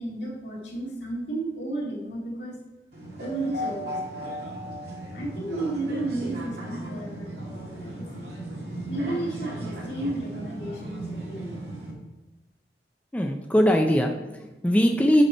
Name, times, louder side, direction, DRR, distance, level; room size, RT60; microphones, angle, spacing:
voice 1, 0.0-2.6 3.2-4.4 5.1-8.1 8.9-11.6, right 2 dB, 75° left, -3 dB, 2.3 m, -33 dB
sound 1, 2.9-11.9, right 1 dB, 60° right, 1.7 m, -36 dB
voice 2, 13.1-15.2, equal, 10° left, 2 dB, 0.4 m, -21 dB
7.9 x 5.8 x 4.2 m, 1.1 s
head